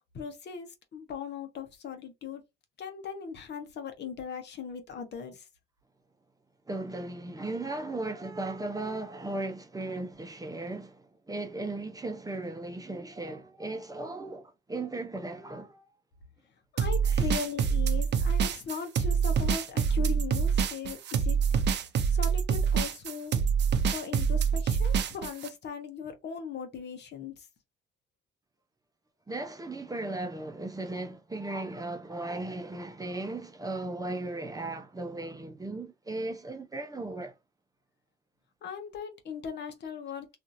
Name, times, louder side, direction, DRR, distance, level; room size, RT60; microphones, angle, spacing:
voice 1, 0.1-2.4 2.8-5.5 16.7-21.4 22.1-23.4 23.9-27.5 38.6-40.4, left 6 dB, 60° left, 0.9 m, -39 dB
voice 2, 6.7-15.8 17.0-17.3 29.3-37.3, right 2 dB, 20° right, 0.6 m, -36 dB
sound 1, 16.8-25.5, right 6 dB, 60° right, 0.5 m, -26 dB
2.8 x 2.5 x 2.5 m
cardioid pair, 90°, 20 cm